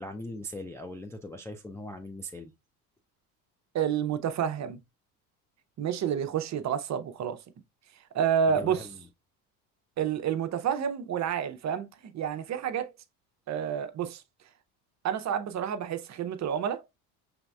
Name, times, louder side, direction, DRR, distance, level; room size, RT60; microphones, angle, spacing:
voice 1, 0.0-2.5 8.5-9.0, left 1 dB, 5° left, 0.3 m, -40 dB
voice 2, 3.7-4.8 5.8-7.4 8.1-8.9 10.0-12.9 13.5-14.2 15.0-16.9, right 8 dB, 35° right, 0.7 m, -29 dB
5.0 x 3.5 x 2.2 m
hypercardioid pair, 75°, 46 cm